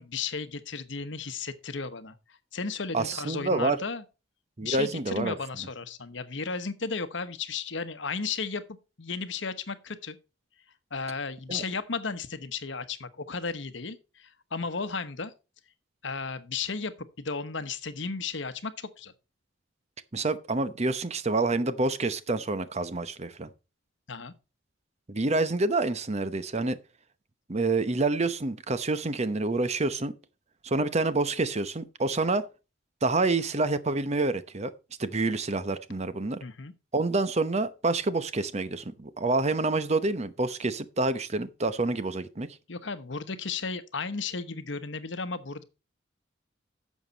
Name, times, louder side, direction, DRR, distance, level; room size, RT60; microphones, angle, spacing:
voice 1, 0.0-2.2 2.5-4.0 4.6-8.6 9.0-10.2 10.9-15.3 16.0-19.1 24.1-24.3 36.4-36.7 42.7-45.6, left 4 dB, 65° left, 1.1 m, -34 dB
voice 2, 2.9-3.8 4.6-5.3 11.5-11.6 20.1-23.5 25.1-26.8 27.5-30.1 30.6-32.4 33.0-34.7 35.0-36.4 36.9-42.5, right 3 dB, 35° right, 0.8 m, -27 dB
11.0 x 7.3 x 4.0 m
head